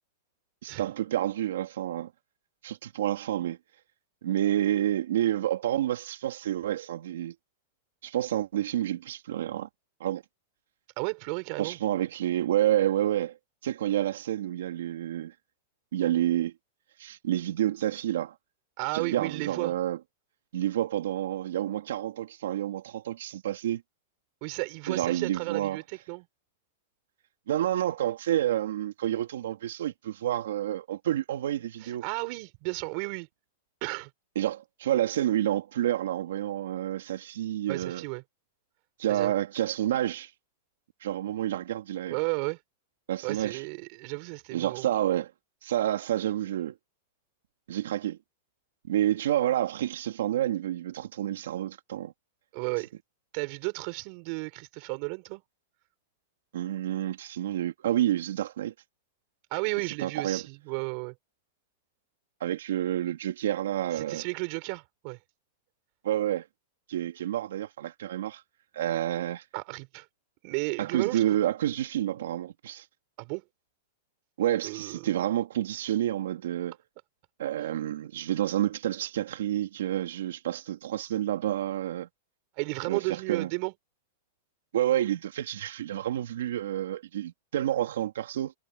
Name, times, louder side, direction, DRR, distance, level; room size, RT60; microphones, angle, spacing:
voice 1, 0.6-2.1 2.6-3.6 4.2-7.3 8.0-9.7 10.0-10.2 11.6-13.4 13.6-15.3 15.9-16.5 17.0-18.3 18.9-20.0 20.5-23.8 24.9-25.8 27.5-32.0 34.3-38.0 39.0-40.3 41.0-42.2 43.1-43.6 44.5-45.3 45.6-46.7 47.7-48.2 48.9-52.1 56.5-58.7 60.0-60.4 62.4-64.2 66.0-66.5 66.9-68.4 68.7-69.4 70.8-72.8 74.4-76.8 77.4-82.1 82.9-83.0 83.3-83.5 84.7-88.5, right 12 dB, 80° right, 3.3 m, -29 dB
voice 2, 11.0-11.8 18.8-19.7 24.4-26.3 31.8-33.3 33.8-34.1 37.7-38.2 39.1-39.3 42.1-42.6 43.2-44.9 52.5-52.9 53.3-55.4 59.5-61.1 63.9-65.2 69.5-70.1 70.4-71.4 73.2-73.4 74.6-75.1 77.6-77.7 82.6-83.7, right 31 dB, 45° right, 4.5 m, -33 dB
supercardioid pair, 155°, 0 cm